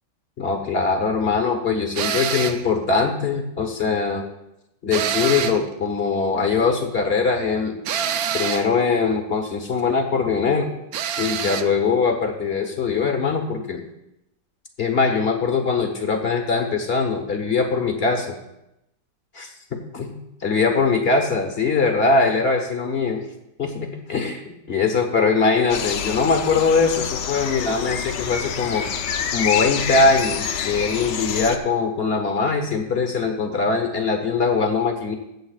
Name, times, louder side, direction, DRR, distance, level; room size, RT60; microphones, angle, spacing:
voice 1, 0.4-4.2 4.8-7.7 8.3-10.7 11.2-13.8 14.8-18.3 19.3-19.5 19.9-20.1 20.4-23.2 23.6-28.9 29.3-35.1, left 4 dB, 40° left, 4 dB, 1.3 m, -21 dB
sound 1, 2.0-2.7 4.9-5.7 7.9-8.7 10.9-11.7, right 8 dB, 70° right, 1.0 m, -26 dB
sound 2, 25.7-31.6, left 7 dB, 80° left, 1.4 m, -27 dB
23.5 x 7.9 x 2.4 m, 0.87 s
omnidirectional pair, 1.9 m